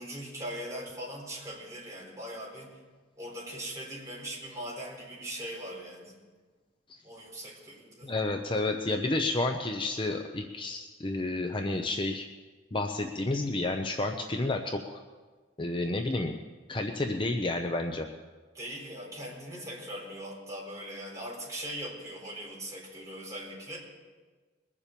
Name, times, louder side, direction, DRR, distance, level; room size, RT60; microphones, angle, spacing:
voice 1, 0.0-2.8 3.2-6.2 7.0-8.1 18.5-23.8, right 1 dB, 15° right, -4 dB, 4.3 m, -40 dB
voice 2, 8.0-12.3 12.7-15.0 15.6-16.4 16.7-18.1, left 2 dB, 25° left, 4 dB, 0.6 m, -30 dB
21.5 x 7.3 x 6.9 m, 1.4 s
head